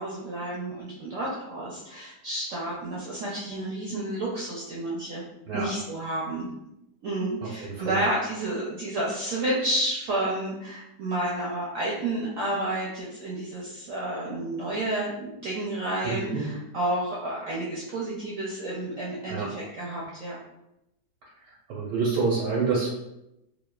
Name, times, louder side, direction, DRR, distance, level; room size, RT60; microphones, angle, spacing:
voice 1, 0.0-5.2 5.5-6.5 7.0-20.4, right 1 dB, 70° right, -5 dB, 0.7 m, -30 dB
voice 2, 7.4-8.0 16.0-16.4 19.3-19.5 21.7-22.9, right 4 dB, 90° right, -7 dB, 1.4 m, -27 dB
3.1 x 2.1 x 2.2 m, 0.88 s
omnidirectional pair, 1.9 m